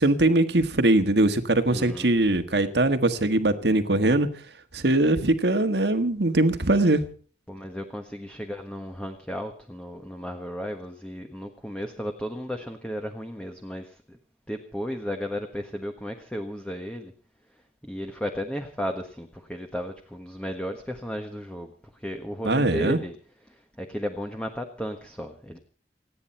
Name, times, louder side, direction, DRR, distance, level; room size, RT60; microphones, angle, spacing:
voice 1, 0.0-4.3 4.7-7.1 22.4-23.0, right 2 dB, 65° right, 1.6 m, -21 dB
voice 2, 1.7-2.1 7.5-14.2 14.5-17.1 17.8-23.2 23.5-25.6, equal, 5° left, 1.4 m, -34 dB
29.0 x 9.7 x 4.3 m
head